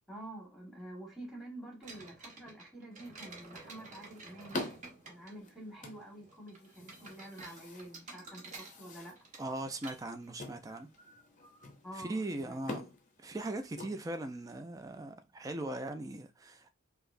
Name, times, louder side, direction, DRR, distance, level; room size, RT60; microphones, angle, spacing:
voice 1, 0.1-4.6 5.1-9.1 11.8-12.6, right 1 dB, ahead, 1.3 m, -48 dB
sound 1, 1.8-12.8, right 3 dB, 35° right, 0.9 m, -53 dB
sound 2, 3.5-14.6, left 2 dB, 40° left, 0.6 m, -47 dB
voice 2, 9.4-10.9 11.9-12.9 13.2-16.7, right 2 dB, 15° right, 0.4 m, -39 dB
4.6 x 2.0 x 2.5 m
head